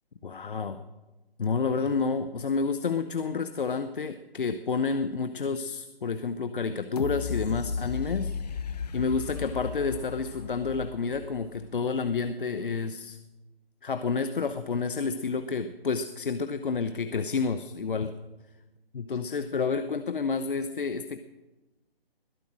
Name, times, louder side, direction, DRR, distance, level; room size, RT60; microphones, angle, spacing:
voice 1, 0.2-0.8 1.4-8.3 8.9-13.2 13.8-18.1 18.9-21.2, left 4 dB, 60° left, 10 dB, 1.0 m, -29 dB
sound 1, 7.0-11.8 12.3-12.4, left 6 dB, 40° left, 1.2 m, -35 dB
21.0 x 10.5 x 6.3 m, 1.1 s
figure-of-eight pair, 155°, 30 cm